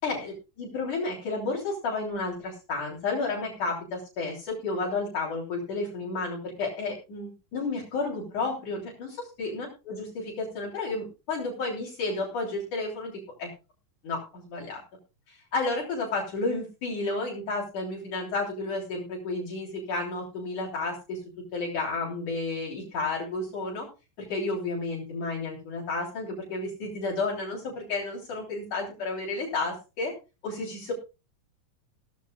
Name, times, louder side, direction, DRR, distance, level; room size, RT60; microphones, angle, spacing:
voice 1, 0.0-13.1 13.4-13.5 14.0-14.8 15.3-21.2 21.5-23.9 24.2-30.1 30.4-30.9, left 3 dB, 65° left, -2 dB, 4.9 m, -32 dB
17.0 x 14.5 x 2.4 m, 0.30 s
omnidirectional pair, 3.8 m